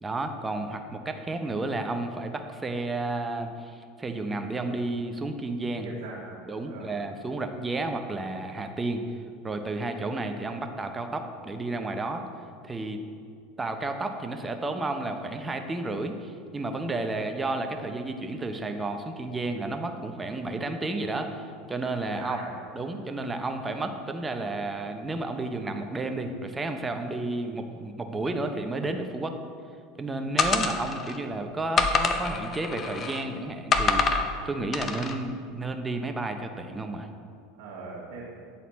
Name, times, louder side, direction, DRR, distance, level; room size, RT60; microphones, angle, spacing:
voice 1, 0.0-5.9 6.5-9.0 9.4-12.2 12.6-13.0 13.6-22.4 22.7-29.4 30.0-37.1, right 2 dB, 20° right, 6 dB, 0.7 m, -32 dB
voice 2, 5.8-6.4 6.6-6.9 22.0-22.5 37.5-38.5, right 3 dB, 65° right, -10 dB, 1.7 m, -41 dB
sound 1, 30.4-31.2 31.8-33.2 33.7-34.3 34.7-35.1, left 4 dB, 35° left, 0.6 m, -26 dB
9.1 x 4.2 x 4.0 m, 2.2 s
hypercardioid pair, 80°, 0 cm